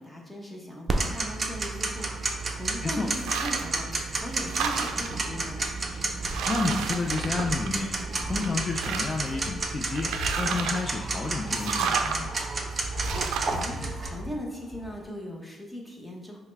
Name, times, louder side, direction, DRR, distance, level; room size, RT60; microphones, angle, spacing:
voice 1, 0.0-5.7 13.2-16.4, equal, ahead, -2 dB, 0.9 m, -39 dB
Tick-tock, 0.9-14.1, right 3 dB, 35° right, 0.5 m, -31 dB
sound 1, 1.8-15.1, left 1 dB, 55° left, 0.8 m, -43 dB
sound 2, 3.1-3.8 4.2-5.2 5.9-6.0 6.3-8.0 8.4-9.3 9.9-10.9 11.5-12.2 13.0-13.6, right 6 dB, 90° right, 0.3 m, -31 dB
voice 2, 6.4-7.9 8.3-12.3, left 3 dB, 35° left, 2 dB, 0.4 m, -30 dB
5.5 x 2.1 x 3.3 m, 1.1 s
cardioid pair, 90°, 0 cm